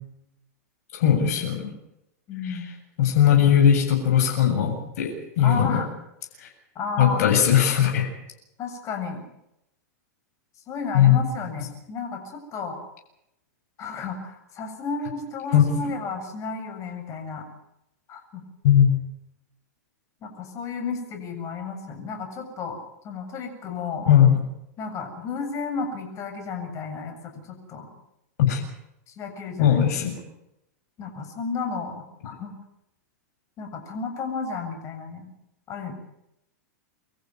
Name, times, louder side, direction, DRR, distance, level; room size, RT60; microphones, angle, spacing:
voice 1, 0.9-1.7 2.5-2.6 3.0-5.8 6.4-6.5 7.0-8.1 10.9-11.2 15.5-15.9 18.6-18.9 24.1-24.3 28.4-28.6 29.6-30.2, left 9 dB, 65° left, 2 dB, 7.4 m, -19 dB
voice 2, 2.3-2.7 3.3-3.6 5.4-5.9 6.7-7.3 8.6-9.2 10.7-12.8 13.8-17.5 18.1-18.4 20.2-22.8 23.0-24.1 24.8-27.9 29.1-29.8 31.0-32.5 33.6-35.3 35.7-36.0, left 4 dB, 35° left, 5 dB, 7.4 m, -33 dB
25.5 x 14.5 x 9.7 m, 0.83 s
hypercardioid pair, 120°, 9 cm